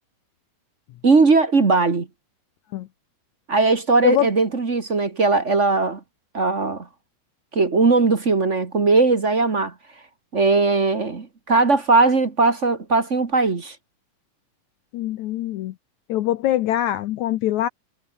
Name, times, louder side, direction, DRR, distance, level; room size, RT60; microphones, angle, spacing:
voice 1, 1.0-2.1 3.5-6.0 6.3-6.9 7.5-9.7 10.3-13.7, right 3 dB, 35° right, 1.3 m, -19 dB
voice 2, 14.9-15.7 16.1-17.7, left 13 dB, 70° left, 1.9 m, -23 dB
omnidirectional pair, 3.9 m